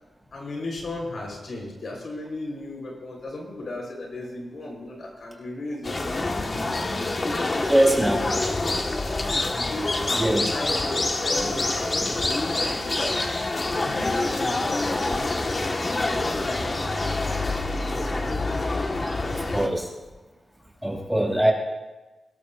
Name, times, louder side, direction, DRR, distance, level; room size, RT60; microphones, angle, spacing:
voice 1, 0.3-7.8 8.3-8.8 9.2-13.2 13.9-15.6 15.9-17.6, left 2 dB, 70° left, -1 dB, 4.0 m, -36 dB
sound 1, 5.8-19.7, left 2 dB, 40° left, 1.5 m, -26 dB
voice 2, 7.7-8.3 10.1-10.4 19.2-19.9 20.8-21.5, right 1 dB, 5° right, -1 dB, 3.9 m, -22 dB
23.5 x 12.5 x 2.6 m, 1.2 s
cardioid pair, 75°, 0 cm